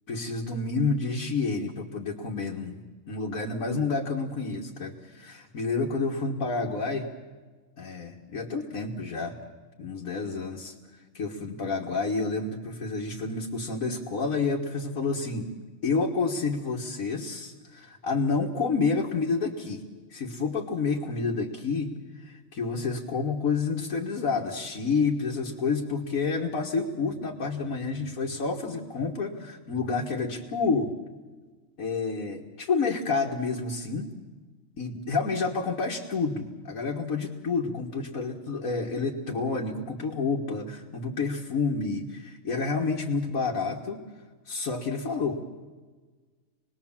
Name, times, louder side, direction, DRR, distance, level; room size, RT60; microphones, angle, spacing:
voice 1, 0.1-7.1 7.8-9.4 9.8-10.7 11.1-15.5 15.8-19.8 20.1-30.9 31.8-34.1 34.8-44.0 44.5-45.4, left 4 dB, 75° left, -1 dB, 2.0 m, -29 dB
27.0 x 20.0 x 7.3 m, 1.4 s
omnidirectional pair, 1.5 m